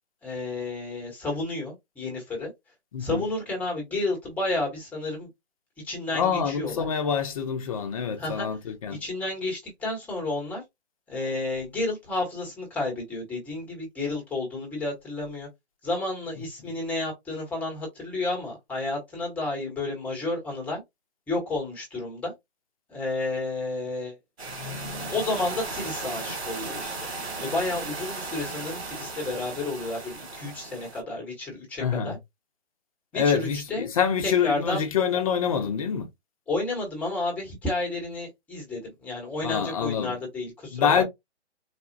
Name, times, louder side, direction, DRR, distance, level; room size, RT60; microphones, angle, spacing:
voice 1, 0.2-2.5 3.0-5.3 5.8-6.9 8.2-8.5 8.9-10.6 11.1-15.5 15.8-20.8 21.3-22.3 22.9-24.2 25.1-26.9 27.4-32.2 33.1-33.9 34.2-34.9 36.5-41.0, left 2 dB, 5° left, 1.1 m, -31 dB
voice 2, 2.9-3.2 6.1-9.0 31.8-32.2 33.1-36.1 39.4-40.1 40.7-41.0, left 7 dB, 30° left, 0.7 m, -26 dB
sound 1, 24.4-31.0, right 3 dB, 70° right, 1.8 m, -36 dB
4.1 x 2.3 x 2.6 m
hypercardioid pair, 150°, 34 cm